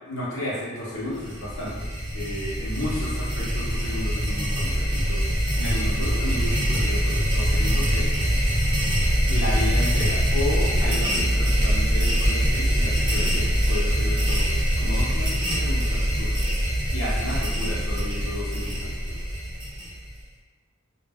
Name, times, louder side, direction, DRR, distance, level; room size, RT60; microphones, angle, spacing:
voice 1, 0.0-5.2 5.6-8.1 9.3-16.4 16.9-19.2, left 1 dB, 65° left, -7 dB, 0.7 m, -33 dB
sound 1, 1.1-20.2, equal, 20° right, 0.5 m, -23 dB
2.2 x 2.2 x 3.4 m, 1.2 s
head